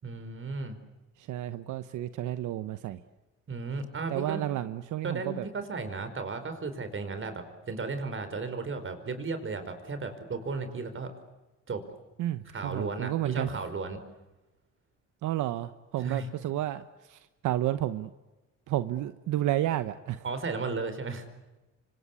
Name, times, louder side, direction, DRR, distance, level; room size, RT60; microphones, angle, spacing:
voice 1, 0.0-0.8 3.5-4.4 5.0-11.1 11.7-11.8 12.5-14.0 16.0-16.3 20.2-21.2, right 4 dB, 40° right, 9 dB, 4.9 m, -34 dB
voice 2, 1.2-3.0 4.1-5.4 12.2-13.5 15.2-16.8 17.1-18.1 18.7-20.2, right 13 dB, 85° right, 12 dB, 1.0 m, -31 dB
27.5 x 25.0 x 8.4 m, 1.1 s
cardioid pair, 90°, 30 cm